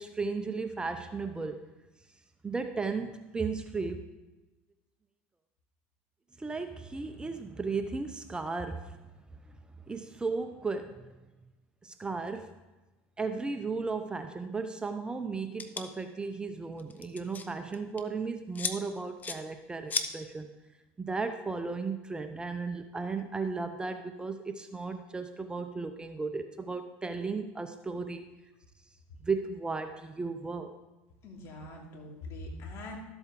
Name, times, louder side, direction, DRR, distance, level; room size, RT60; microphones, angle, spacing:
voice 1, 0.0-1.6 2.4-4.0 6.4-9.0 9.9-11.1 11.8-12.5 13.2-20.5 21.0-28.3 29.2-30.7, right 4 dB, 15° right, 7 dB, 0.7 m, -35 dB
sound 1, 15.6-15.9 16.8-17.5 17.7-18.0 18.6-18.8 19.2-19.4 19.9-20.1, left 5 dB, 30° left, 0.9 m, -33 dB
voice 2, 31.2-33.0, left 2 dB, 50° left, 0 dB, 2.8 m, -43 dB
12.5 x 8.0 x 3.7 m, 1.1 s
supercardioid pair, 100°, 6 cm